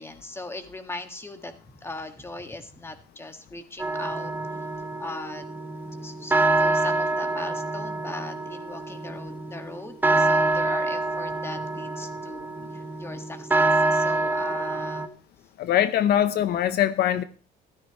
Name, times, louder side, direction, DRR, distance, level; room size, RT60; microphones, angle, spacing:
voice 1, 0.0-4.7 5.0-5.5 6.0-12.5 12.7-15.1, left 2 dB, 15° left, 7 dB, 1.8 m, -39 dB
sound 1, 3.8-15.1, right 2 dB, 10° right, 1.1 m, -26 dB
voice 2, 15.6-17.2, left 11 dB, 70° left, 13 dB, 0.8 m, -22 dB
14.5 x 13.5 x 3.1 m, 0.39 s
cardioid pair, 110°, 17 cm